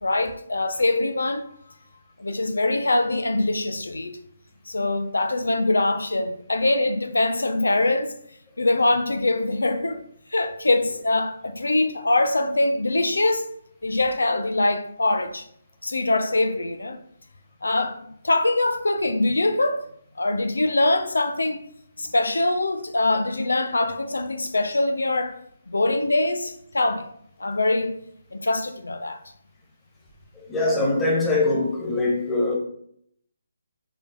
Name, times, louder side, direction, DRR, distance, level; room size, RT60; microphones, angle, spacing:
voice 1, 0.0-1.5 2.2-4.2 4.7-8.1 8.6-13.5 13.8-15.4 15.8-17.0 17.6-19.9 20.2-21.6 22.0-25.4 25.7-27.1 27.4-28.0 28.3-29.2, left 2 dB, 75° left, 0.6 m, -23 dB
voice 2, 30.3-32.6, left 2 dB, 10° left, 1.5 m, -23 dB
6.8 x 4.0 x 3.8 m
figure-of-eight pair, 140°, 0 cm